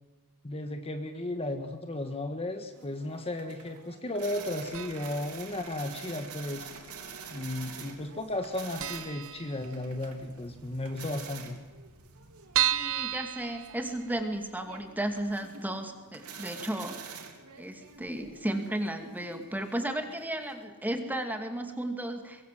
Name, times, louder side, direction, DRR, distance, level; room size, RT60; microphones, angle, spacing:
voice 1, 0.4-6.7 7.3-11.6, left 1 dB, 25° left, 6 dB, 1.5 m, -35 dB
sound 1, 2.7-20.6, right 6 dB, 85° right, 3.3 m, -47 dB
sound 2, 4.7-5.3 5.5-5.6 6.6-7.3 7.5-7.7 8.0-8.1 8.4-8.5 8.8-10.1 10.5-10.6 10.9-11.0 11.1-11.2 11.7-14.4 14.8-14.9 15.3-15.4, right 11 dB, 65° right, 1.0 m, -32 dB
voice 2, 12.7-17.2 17.6-22.4, right 1 dB, 10° right, 5 dB, 2.5 m, -34 dB
23.5 x 23.0 x 7.8 m, 1.2 s
head